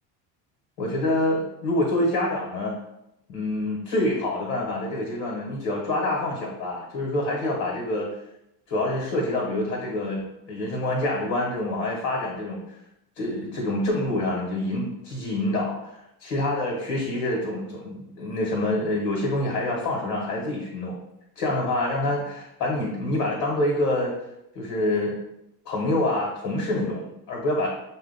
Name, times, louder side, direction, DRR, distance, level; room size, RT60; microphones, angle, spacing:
voice 1, 0.8-2.7 3.3-8.1 8.7-12.8 13.2-15.9 16.2-21.0 21.4-24.1 24.5-25.2 25.6-27.7, left 1 dB, 70° left, -1 dB, 1.4 m, -26 dB
6.1 x 2.2 x 3.9 m, 0.83 s
hypercardioid pair, 55°, 50 cm